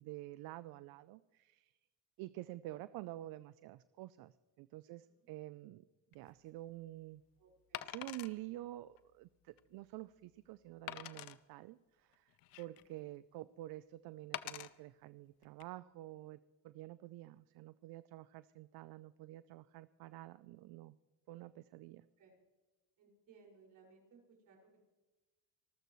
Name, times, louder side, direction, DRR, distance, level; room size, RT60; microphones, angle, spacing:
voice 1, 0.0-1.8 2.2-5.9 6.1-7.2 7.8-16.4 16.6-21.0 21.3-22.1, right 16 dB, 80° right, 16 dB, 0.5 m, -49 dB
voice 2, 4.9-5.3 7.4-8.0 12.5-12.9 22.2-22.4 23.0-24.8, right 4 dB, 65° right, 0 dB, 5.8 m, -65 dB
Wood, 6.1-6.3 7.7-8.3 9.0-9.1 9.6-9.7 10.9-11.4 12.1-12.9 14.3-14.7 15.4-15.6, left 14 dB, 70° left, 0.9 m, -45 dB
26.5 x 13.5 x 3.2 m, 1.2 s
cardioid pair, 110°, 36 cm